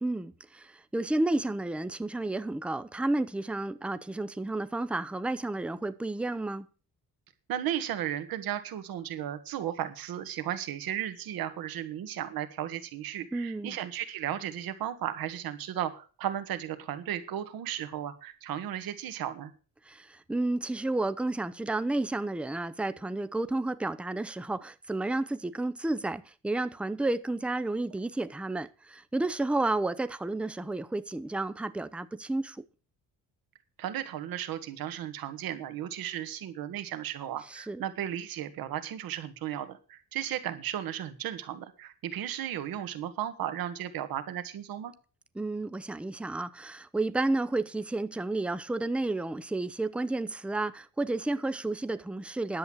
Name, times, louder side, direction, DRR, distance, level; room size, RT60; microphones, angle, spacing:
voice 1, 0.0-6.7 13.3-13.8 19.9-32.6 37.5-37.8 45.4-52.6, right 2 dB, 5° right, 0.6 m, -31 dB
voice 2, 7.5-19.5 33.8-44.9, right 11 dB, 85° right, 1.8 m, -35 dB
10.5 x 8.2 x 7.2 m
cardioid pair, 135°, 34 cm